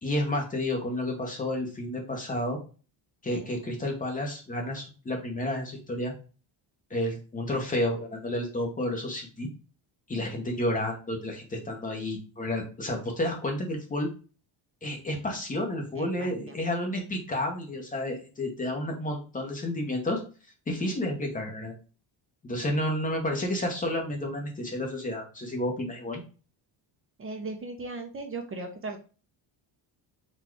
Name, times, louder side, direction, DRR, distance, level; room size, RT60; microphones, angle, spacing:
voice 1, 0.0-2.6 3.2-6.1 6.9-9.5 10.1-14.1 14.8-20.2 20.7-21.7 22.4-26.2, left 1 dB, 20° left, 1 dB, 0.7 m, -31 dB
voice 2, 16.0-16.6 27.2-29.0, right 3 dB, 30° right, 4 dB, 0.5 m, -38 dB
4.2 x 2.3 x 4.4 m, 0.35 s
cardioid pair, 180°, 46 cm